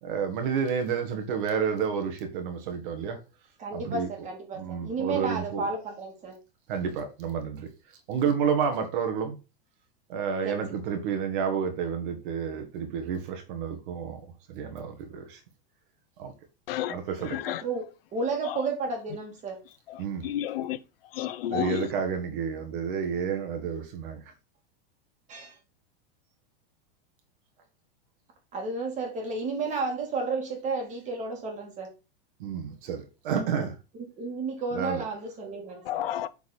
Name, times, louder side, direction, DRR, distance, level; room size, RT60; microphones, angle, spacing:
voice 1, 0.0-3.2 3.7-4.1 4.5-5.7 6.7-7.7 8.1-9.4 10.1-14.2 14.5-15.4 16.2-16.3 16.9-17.4 20.0-20.3 21.5-24.3 32.4-33.7 34.7-35.0, right 7 dB, 60° right, 1.9 m, -30 dB
voice 2, 3.6-6.4 10.4-10.6 17.4-17.8 18.1-19.6 25.3-25.6 28.5-31.9 33.5-33.6 34.2-36.0, right 3 dB, 25° right, 2.6 m, -32 dB
voice 3, 16.7-17.0 17.3-17.6 18.5-18.6 19.9-20.8 21.1-21.9 35.8-36.3, left 12 dB, 70° left, 0.9 m, -31 dB
8.5 x 4.7 x 4.3 m
supercardioid pair, 155°, 30 cm